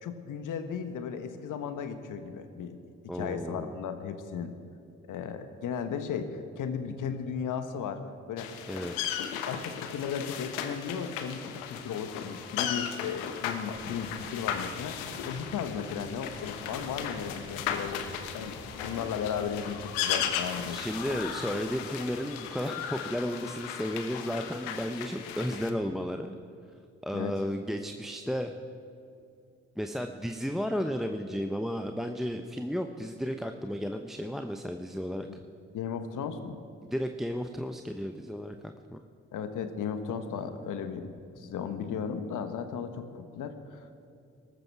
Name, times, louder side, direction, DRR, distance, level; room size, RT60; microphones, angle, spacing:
voice 1, 0.0-2.8 3.1-4.5 5.1-8.5 9.5-18.0 18.3-20.8 27.1-27.3 35.3-35.4 35.7-36.6 39.3-43.8, left 7 dB, 65° left, 9 dB, 1.4 m, -35 dB
voice 2, 3.1-3.7 8.7-9.1 20.7-26.3 27.0-28.5 29.8-35.4 36.8-39.0, equal, ahead, 6 dB, 0.8 m, -33 dB
sound 1, 8.4-25.7, left 8 dB, 80° left, 1.0 m, -36 dB
Engine, 13.7-21.7, right 2 dB, 45° right, 3.9 m, -50 dB
19.0 x 13.5 x 4.7 m, 2.6 s
hypercardioid pair, 45°, 33 cm